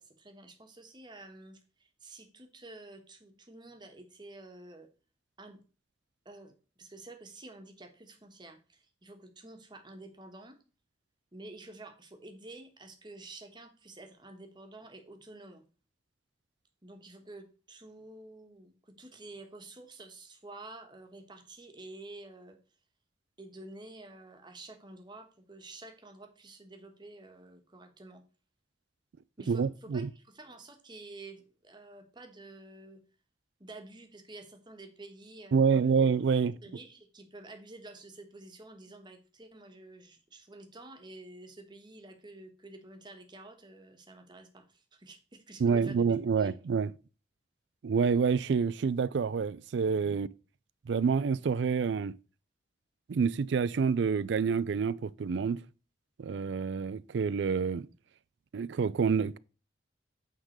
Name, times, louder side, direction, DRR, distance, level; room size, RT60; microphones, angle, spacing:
voice 1, 0.0-4.9 5.4-5.6 6.2-10.6 11.3-15.6 16.8-22.6 23.4-28.2 29.4-33.0 33.6-36.0 36.4-46.5, right 2 dB, 25° right, 1.2 m, -50 dB
voice 2, 29.5-30.1 35.5-36.6 45.6-46.9 47.8-50.3 50.9-52.1 53.1-55.6 56.2-57.9 58.5-59.4, right 5 dB, 70° right, 0.4 m, -27 dB
9.0 x 3.8 x 6.4 m
head